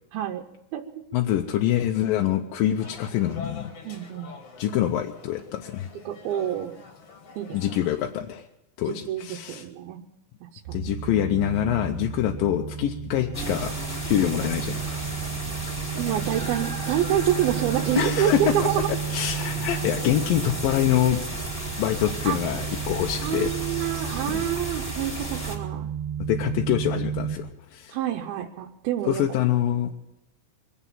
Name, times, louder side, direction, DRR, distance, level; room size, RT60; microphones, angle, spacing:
voice 1, 0.1-0.4 0.7-0.8 3.8-4.3 6.1-6.8 7.4-7.6 8.9-10.0 10.4-10.8 15.9-18.9 22.2-22.4 23.2-25.9 27.9-29.2, right 11 dB, 85° right, 2 dB, 2.7 m, -27 dB
voice 2, 1.1-3.7 4.6-5.9 7.5-8.5 8.8-9.6 10.7-13.7 14.1-15.0 18.0-18.7 19.1-21.2 21.8-23.5 26.3-28.0 29.1-30.0, left 11 dB, 75° left, 3 dB, 2.4 m, -25 dB
sound 1, 2.8-8.1, left 4 dB, 50° left, 2.4 m, -45 dB
sound 2, 10.7-27.4, right 8 dB, 65° right, 1.5 m, -33 dB
sound 3, 13.3-25.6, right 1 dB, 5° left, 2.8 m, -34 dB
23.5 x 8.3 x 7.3 m, 0.88 s
omnidirectional pair, 4.3 m